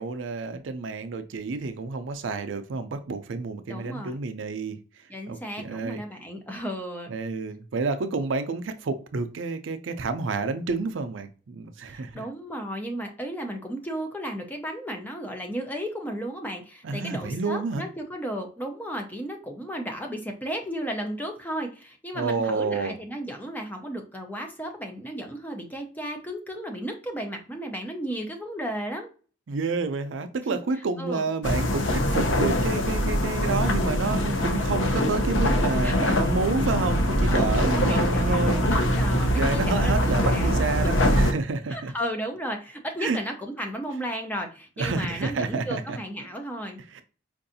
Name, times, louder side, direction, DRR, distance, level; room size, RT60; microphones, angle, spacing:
voice 1, 0.0-4.8 5.3-6.0 7.1-12.2 16.8-17.8 22.1-22.9 29.5-38.6 39.1-41.9 43.0-43.2 44.8-46.0 46.9-47.0, right 4 dB, 80° right, 0.5 m, -29 dB
voice 2, 3.7-4.1 5.1-7.2 11.9-29.1 31.0-31.3 35.8-36.2 37.2-40.6 41.7-46.8, equal, 10° left, 0.6 m, -34 dB
sound 1, 31.4-41.3, equal, 85° left, 0.6 m, -23 dB
4.7 x 2.6 x 2.6 m
head